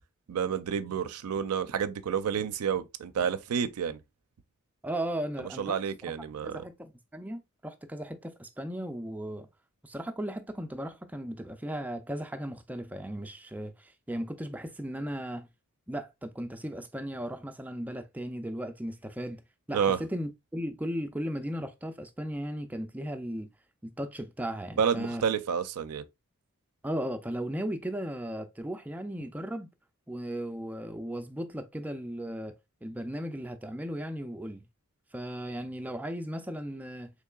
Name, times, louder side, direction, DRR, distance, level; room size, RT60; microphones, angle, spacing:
voice 1, 0.3-4.0 5.6-6.6 19.7-20.0 24.8-26.0, right 7 dB, 85° right, 0.4 m, -29 dB
voice 2, 4.8-5.8 6.4-9.5 9.8-15.5 15.9-19.4 19.7-23.5 23.8-25.2 26.8-29.7 30.1-32.5 32.8-34.7 35.1-37.1, equal, 5° right, 0.3 m, -36 dB
3.7 x 3.1 x 2.3 m
head